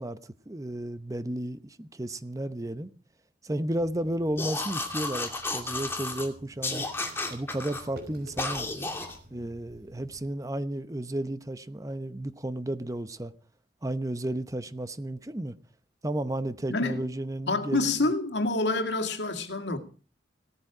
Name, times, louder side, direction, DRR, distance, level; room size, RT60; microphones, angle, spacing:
voice 1, 0.0-2.9 3.4-6.8 7.3-8.7 9.3-13.3 13.8-15.5 16.0-17.9, right 1 dB, 20° right, 0.8 m, -33 dB
sound 1, 3.6-10.3, right 1 dB, 65° right, 5.1 m, -51 dB
sound 2, 4.4-6.3 6.6-7.8 8.4-9.2, left 2 dB, 15° left, 2.5 m, -32 dB
voice 2, 16.7-17.0 17.5-19.8, left 2 dB, 85° left, 2.1 m, -27 dB
17.5 x 13.5 x 4.9 m
head